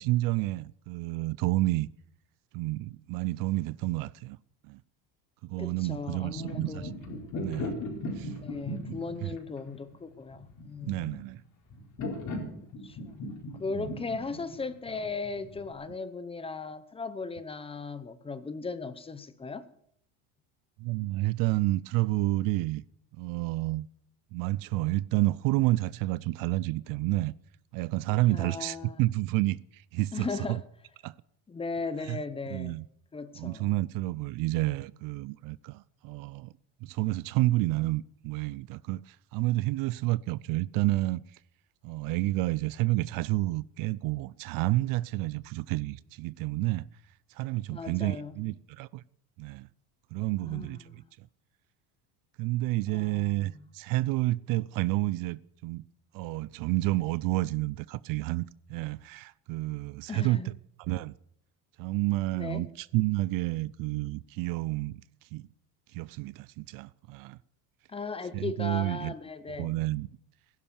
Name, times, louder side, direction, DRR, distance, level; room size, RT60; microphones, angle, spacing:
voice 1, 0.0-1.9 2.5-4.4 4.6-4.8 5.4-6.9 7.4-7.7 8.2-8.3 8.8-8.9 9.2-9.4 10.9-11.4 13.7-13.9 20.8-22.8 23.2-23.9 24.3-27.3 27.7-30.6 31.0-31.1 32.0-32.2 32.5-32.9 33.4-36.5 36.8-41.4 41.8-46.9 47.3-49.0 49.4-49.7 50.1-51.3 52.4-55.8 56.1-60.5 60.8-61.1 61.8-65.0 65.3-65.5 65.9-67.4 68.3-69.1 69.6-70.1, right 19 dB, 55° right, 0.5 m, -30 dB
voice 2, 5.6-6.9 8.4-11.2 12.8-13.3 13.6-19.7 28.3-29.0 30.1-30.6 31.5-32.8 33.1-33.7 47.7-48.3 50.4-51.0 52.9-53.7 60.1-60.5 62.4-62.6 67.9-69.7, left 4 dB, 15° left, 0.8 m, -37 dB
sound 1, 6.0-15.7, left 1 dB, 45° left, 4.3 m, -38 dB
16.0 x 11.0 x 7.1 m
cardioid pair, 145°, 40 cm